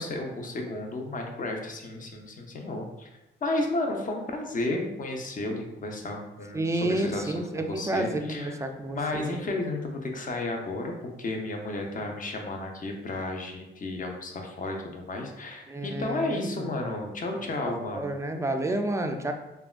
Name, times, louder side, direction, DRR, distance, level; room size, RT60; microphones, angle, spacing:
voice 1, 0.0-3.1 3.4-8.6 8.9-18.1, left 2 dB, 40° left, 2 dB, 0.6 m, -33 dB
voice 2, 6.5-9.4 15.7-17.0 17.9-19.3, right 1 dB, 15° right, 5 dB, 0.3 m, -30 dB
3.4 x 2.2 x 2.4 m, 0.94 s
cardioid pair, 70°, 21 cm